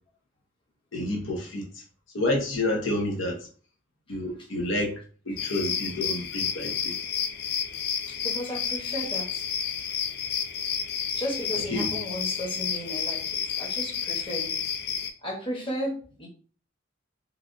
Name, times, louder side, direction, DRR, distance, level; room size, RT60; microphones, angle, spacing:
voice 1, 0.9-1.8 2.1-3.4 4.1-5.0 5.2-6.9 11.7-11.9, left 1 dB, 75° left, 0.8 m, -29 dB
sound 1, 5.4-15.1, left 7 dB, 55° left, 0.3 m, -31 dB
voice 2, 8.1-9.5 9.8-9.9 10.4-10.5 11.1-14.6 15.2-16.3, equal, 25° left, 0.9 m, -34 dB
3.2 x 2.3 x 2.5 m
head